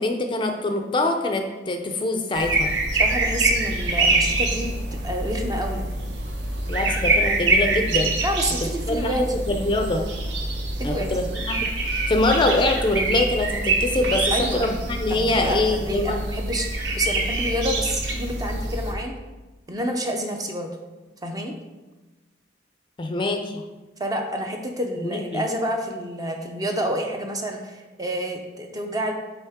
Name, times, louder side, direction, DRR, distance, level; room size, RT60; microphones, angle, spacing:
voice 1, 0.0-2.7 6.7-8.2 8.9-10.1 10.8-16.2 23.0-23.6 25.0-25.4, left 2 dB, 25° left, 4 dB, 0.4 m, -24 dB
sound 1, 2.3-18.9, right 2 dB, 75° right, 0.8 m, -25 dB
voice 2, 2.9-4.8 5.0-5.8 8.2-9.4 10.8-11.1 14.3-14.7 15.1-19.1 19.7-20.7 21.2-21.6 24.0-29.1, equal, 20° right, 3 dB, 0.6 m, -28 dB
9.0 x 3.2 x 3.5 m, 1.2 s
head